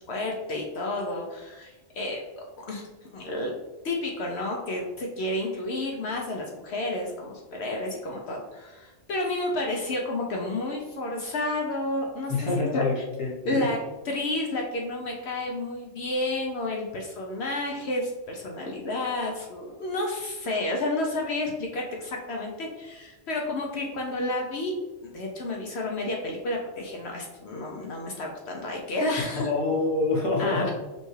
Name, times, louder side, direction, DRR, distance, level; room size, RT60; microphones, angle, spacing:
voice 1, 0.1-2.8 3.1-3.5 3.8-13.0 13.4-13.8 14.0-24.7 25.0-29.5 30.4-30.7, left 2 dB, 65° left, 0 dB, 0.8 m, -31 dB
voice 2, 12.4-13.7 29.2-30.7, left 3 dB, 30° left, -4 dB, 0.8 m, -26 dB
5.3 x 2.3 x 3.1 m, 1.1 s
omnidirectional pair, 1.3 m